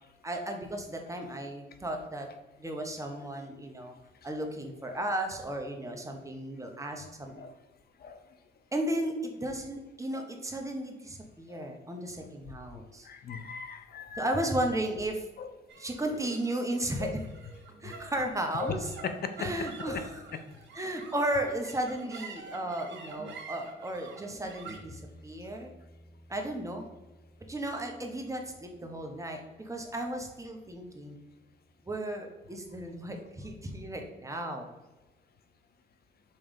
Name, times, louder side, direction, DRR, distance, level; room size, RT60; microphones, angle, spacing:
voice 1, 0.2-2.3 2.6-3.9 4.2-7.3 8.7-13.1 14.2-15.2 15.8-17.2 17.8-18.9 19.4-20.3 20.7-25.7 26.3-26.9 27.5-31.2 31.9-34.7, right 1 dB, 15° right, 3 dB, 1.1 m, -34 dB
voice 2, 13.1-14.3 15.4-15.5 17.0-17.1 18.6-18.7 19.0-19.5 19.9-20.0, left 6 dB, 50° left, 9 dB, 0.8 m, -37 dB
sound 1, 15.7-32.2, right 4 dB, 65° right, 1.3 m, -49 dB
5.5 x 3.4 x 5.2 m, 1.1 s
cardioid pair, 90°, 20 cm